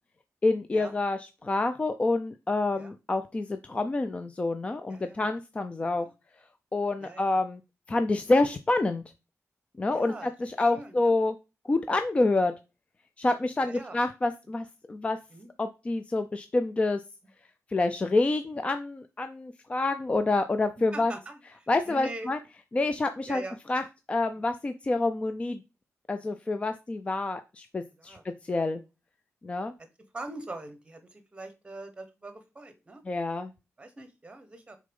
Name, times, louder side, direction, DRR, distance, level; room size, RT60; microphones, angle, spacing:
voice 1, 0.4-6.1 6.7-7.6 7.9-9.0 9.8-11.4 11.7-12.5 13.2-15.2 15.6-17.0 17.7-21.1 21.7-22.4 22.7-23.4 23.7-23.8 24.1-25.6 26.1-28.8 29.4-29.7 33.1-33.5, left 2 dB, 25° left, 9 dB, 0.4 m, -27 dB
voice 2, 4.9-5.3 6.0-6.1 7.0-7.4 9.9-10.3 10.6-11.1 13.6-14.0 15.3-15.5 20.9-21.4 21.9-22.3 22.8-22.9 23.3-23.6 24.4-24.5 26.2-26.4 28.0-28.6 30.0-33.0 33.8-34.8, right 2 dB, 20° right, 8 dB, 1.1 m, -43 dB
6.4 x 3.8 x 5.3 m, 0.28 s
wide cardioid pair, 175°, 5 cm